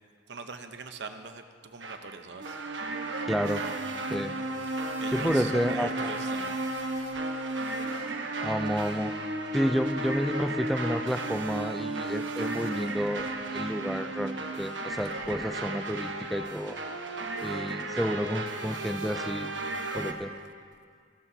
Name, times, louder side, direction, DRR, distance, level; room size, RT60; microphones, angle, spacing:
voice 1, 0.3-2.6 3.0-3.6 5.0-7.3 18.7-19.1, right 4 dB, 70° right, 7 dB, 0.9 m, -43 dB
sound 1, 1.8-20.1, right 2 dB, 85° right, 1.2 m, -34 dB
voice 2, 3.3-3.6 4.1-4.3 5.1-6.1 8.4-9.1 9.5-13.3 13.5-16.8 17.4-19.5 19.9-20.3, equal, ahead, 9 dB, 0.4 m, -30 dB
29.5 x 12.0 x 2.8 m, 2.2 s
head